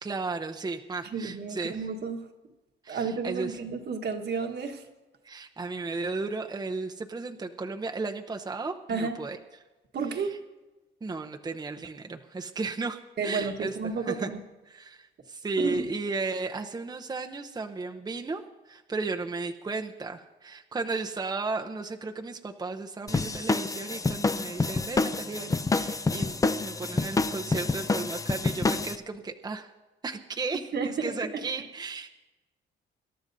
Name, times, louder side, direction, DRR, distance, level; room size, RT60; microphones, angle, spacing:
voice 1, 0.0-1.9 2.8-3.6 5.2-9.4 10.1-10.3 11.0-13.8 14.1-14.3 14.7-29.7 30.0-32.1, right 3 dB, 20° right, 3 dB, 0.7 m, -34 dB
voice 2, 1.0-2.3 2.9-4.8 8.9-9.2 9.9-10.4 13.2-14.4 15.6-15.9 30.7-31.2, right 5 dB, 55° right, 5 dB, 1.4 m, -31 dB
sound 1, 23.1-29.0, left 3 dB, 15° left, 0.5 m, -28 dB
25.5 x 12.0 x 2.7 m, 1.1 s
cardioid pair, 90°, 20 cm